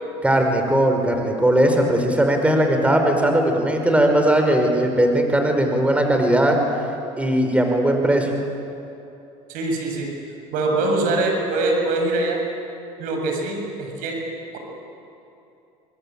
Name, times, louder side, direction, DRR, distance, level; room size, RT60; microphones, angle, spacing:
voice 1, 0.2-6.6 7.2-8.3, right 1 dB, 10° right, 3 dB, 5.0 m, -18 dB
voice 2, 9.5-10.1 10.5-12.4 13.0-14.2, right 2 dB, 70° right, 2 dB, 7.1 m, -23 dB
26.5 x 21.5 x 8.9 m, 2.8 s
supercardioid pair, 85°, 15 cm